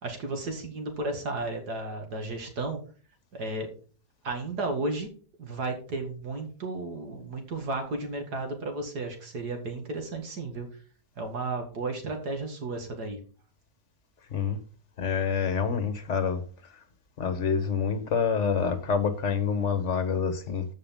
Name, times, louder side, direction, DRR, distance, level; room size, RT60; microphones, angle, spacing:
voice 1, 0.0-2.8 3.3-3.7 4.2-5.1 5.4-10.7 11.2-13.2, right 2 dB, 70° right, 2.7 m, -33 dB
voice 2, 15.0-16.4 17.2-20.7, left 6 dB, 50° left, 1.4 m, -27 dB
14.5 x 5.4 x 3.7 m
omnidirectional pair, 1.8 m